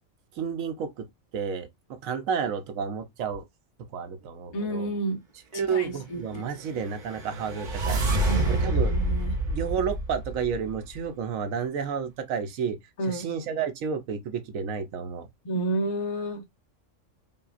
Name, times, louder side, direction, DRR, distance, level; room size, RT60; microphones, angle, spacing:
voice 1, 0.4-1.1 1.3-1.7 2.0-3.4 3.9-4.9 5.5-8.0 8.5-8.9 9.5-12.8 13.1-15.2, right 6 dB, 90° right, 1.1 m, -31 dB
voice 2, 4.5-5.2 5.5-6.4 8.2-9.3 13.0-13.3 15.4-16.4, right 1 dB, 35° left, 0.8 m, -31 dB
sound 1, 6.8-11.0, right 1 dB, 40° right, 0.9 m, -27 dB
5.5 x 2.3 x 2.4 m
omnidirectional pair, 1.3 m